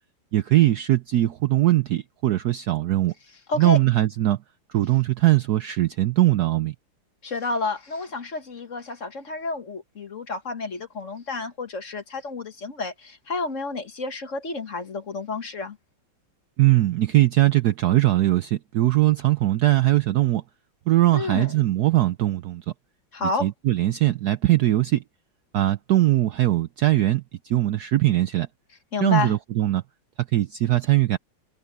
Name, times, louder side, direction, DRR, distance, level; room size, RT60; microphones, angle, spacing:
voice 1, 0.3-3.1 3.6-4.4 4.7-6.7 16.6-20.4 20.9-22.6 23.4-25.0 25.5-28.5 29.0-29.8 30.3-31.2, right 15 dB, 70° right, 0.9 m, -21 dB
voice 2, 7.2-15.8 21.1-21.5 23.1-23.5 28.9-29.4, left 3 dB, 40° left, 1.6 m, -30 dB
open air
omnidirectional pair, 2.2 m